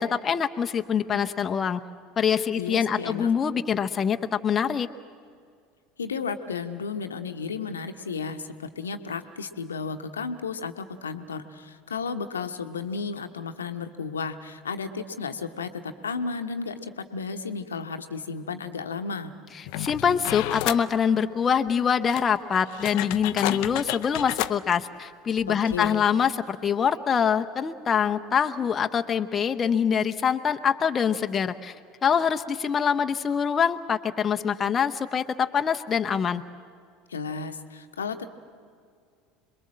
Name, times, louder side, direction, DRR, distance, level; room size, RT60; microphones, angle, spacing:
voice 1, 0.0-1.8 2.2-4.9 19.7-31.7 32.0-36.4, left 7 dB, 30° left, 6 dB, 0.8 m, -24 dB
voice 2, 2.6-3.3 6.0-19.3 25.5-26.0 37.1-38.3, left 5 dB, 80° left, 7 dB, 1.1 m, -33 dB
sound 1, 19.6-20.9 21.7-21.8 22.1-24.5 25.4-25.5 25.7-25.9, left 16 dB, 55° left, 0.6 m, -31 dB
27.0 x 21.5 x 7.6 m, 2.2 s
figure-of-eight pair, 70°, 0 cm